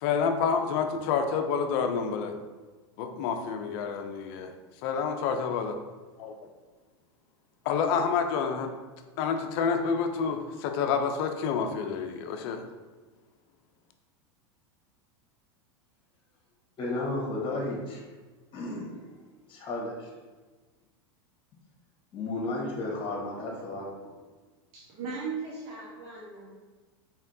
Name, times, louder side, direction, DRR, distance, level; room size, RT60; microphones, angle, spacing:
voice 1, 0.0-2.3 3.0-4.5 4.8-5.8 6.2-6.3 7.7-8.7 9.2-12.6, left 6 dB, 60° left, 6 dB, 0.5 m, -28 dB
voice 2, 16.8-18.1 18.5-19.0 19.5-20.1 22.1-24.1, left 2 dB, 35° left, -2 dB, 1.5 m, -33 dB
voice 3, 24.7-26.7, right 4 dB, 60° right, -6 dB, 1.1 m, -38 dB
4.2 x 3.6 x 2.7 m, 1.3 s
hypercardioid pair, 115°, 14 cm